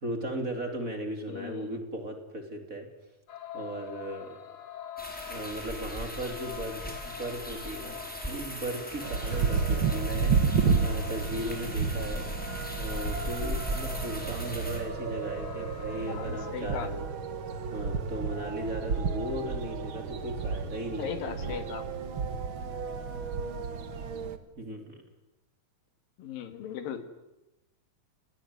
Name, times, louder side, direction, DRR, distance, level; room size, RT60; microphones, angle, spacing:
voice 1, 0.0-2.9 3.5-4.4 5.3-8.0 8.3-12.3 12.8-17.1 17.7-21.7 24.6-25.0, right 1 dB, 25° right, 5 dB, 2.9 m, -37 dB
voice 2, 1.3-1.8 16.1-16.9 21.0-21.9 26.2-27.3, left 8 dB, 80° left, 10 dB, 3.5 m, -38 dB
sound 1, 3.3-16.5, left 9 dB, 55° left, 1.0 m, -45 dB
sound 2, 5.0-14.8, equal, ahead, 5.3 m, -39 dB
sound 3, 9.0-24.4, right 5 dB, 50° right, 1.7 m, -31 dB
29.5 x 19.0 x 9.6 m, 0.99 s
omnidirectional pair, 4.1 m